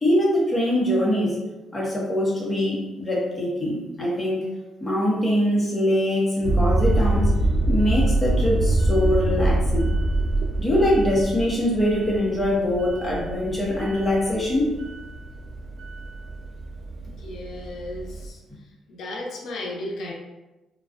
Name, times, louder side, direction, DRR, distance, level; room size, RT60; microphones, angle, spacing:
voice 1, 0.0-1.4 1.7-4.4 4.8-7.3 7.7-9.9 10.6-14.7, left 1 dB, 20° left, -5 dB, 0.9 m, -23 dB
sound 1, 6.4-18.3, right 1 dB, 65° right, 0.3 m, -25 dB
voice 2, 17.1-20.1, left 1 dB, 70° left, -1 dB, 0.6 m, -35 dB
2.4 x 2.2 x 2.3 m, 1.0 s
cardioid pair, 90°, 0 cm